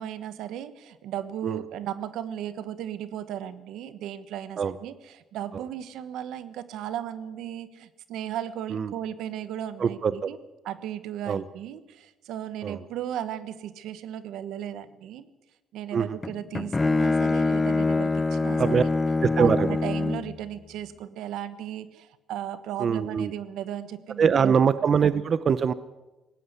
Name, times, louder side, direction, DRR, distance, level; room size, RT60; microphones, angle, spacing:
voice 1, 0.0-10.4 10.6-15.3 15.7-18.9 19.4-24.5, right 10 dB, 85° right, 13 dB, 1.3 m, -36 dB
voice 2, 9.8-10.3 11.3-11.4 12.6-12.8 15.9-16.2 18.6-18.8 19.2-19.7 22.8-23.3 24.2-25.7, right 6 dB, 45° right, 15 dB, 0.7 m, -23 dB
Bowed string instrument, 16.2-20.4, left 3 dB, 20° left, 0.7 m, -24 dB
19.5 x 17.0 x 8.2 m, 1.1 s
cardioid pair, 120°, 0 cm